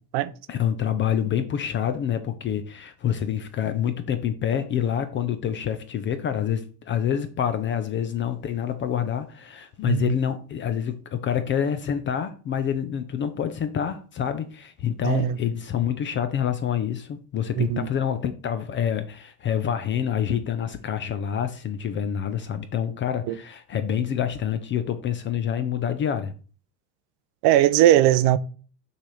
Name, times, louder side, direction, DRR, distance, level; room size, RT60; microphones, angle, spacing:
voice 1, 0.5-26.3, left 9 dB, 25° left, 0.3 m, -27 dB
voice 2, 15.0-15.4 17.6-17.9 23.3-23.4 27.4-28.4, right 13 dB, 50° right, 0.5 m, -19 dB
6.3 x 3.4 x 5.4 m
supercardioid pair, 125°, 49 cm